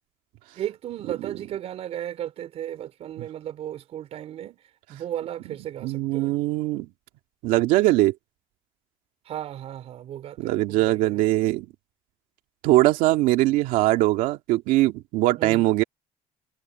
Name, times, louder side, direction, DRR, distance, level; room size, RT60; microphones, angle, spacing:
voice 1, 0.6-4.6 4.9-6.4 9.3-11.2 15.4-15.7, right 11 dB, 50° right, 4.1 m, -35 dB
voice 2, 5.8-6.9 7.4-8.1 10.4-11.7 12.6-15.8, right 17 dB, 85° right, 2.2 m, -21 dB
cardioid pair, 150°, 14 cm